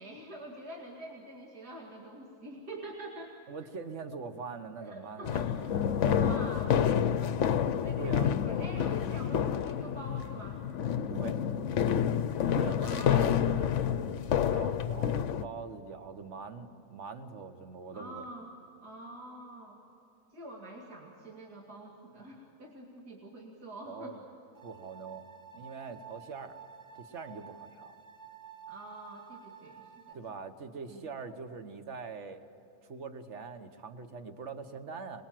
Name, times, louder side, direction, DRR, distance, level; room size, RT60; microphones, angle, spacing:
voice 1, 0.0-3.3 4.8-7.2 7.8-10.6 12.8-13.3 17.9-18.5 18.8-19.8 20.3-24.2 28.7-30.2 30.9-31.1, right 1 dB, 85° right, -2 dB, 2.9 m, -45 dB
voice 2, 3.5-5.3 8.0-8.3 11.1-11.4 12.5-13.7 14.3-18.3 23.8-24.2 24.6-25.2 25.5-26.6 26.9-27.9 30.1-32.4 32.8-35.2, right 5 dB, 50° right, 8 dB, 1.5 m, -43 dB
sound 1, 5.2-15.4, left 8 dB, 60° left, 0.9 m, -29 dB
sound 2, 24.5-30.1, right 7 dB, 15° right, 0.7 m, -51 dB
26.0 x 21.0 x 7.6 m, 2.9 s
omnidirectional pair, 1.6 m